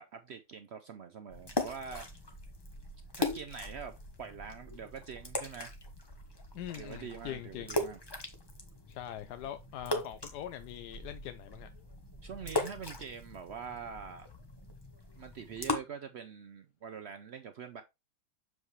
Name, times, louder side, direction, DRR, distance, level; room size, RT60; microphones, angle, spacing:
voice 1, 0.0-2.1 3.2-5.8 6.7-8.0 9.4-9.5 12.2-14.3 15.2-17.8, right 6 dB, 85° right, 0.5 m, -44 dB
sound 1, 1.3-15.8, left 2 dB, 20° left, 0.8 m, -39 dB
voice 2, 6.5-7.7 8.9-11.7, left 11 dB, 75° left, 1.1 m, -42 dB
7.1 x 4.8 x 3.1 m
omnidirectional pair, 1.9 m